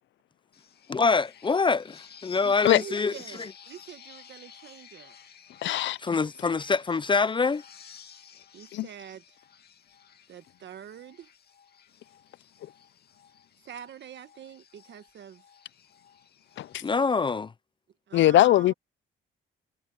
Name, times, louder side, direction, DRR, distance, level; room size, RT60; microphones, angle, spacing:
sound 1, 0.5-17.0, left 7 dB, 55° left, 2.3 m, -53 dB
voice 1, 0.9-3.1 3.4-3.5 6.0-7.6 16.8-17.5, left 4 dB, 25° left, 0.5 m, -25 dB
voice 2, 2.4-5.2 8.5-9.2 10.3-11.3 13.6-15.4 18.1-18.7, right 9 dB, 65° right, 1.6 m, -45 dB
voice 3, 5.6-6.0 8.7-8.9 16.6-16.8 18.1-18.7, left 13 dB, 70° left, 0.6 m, -21 dB
cardioid pair, 90°, 20 cm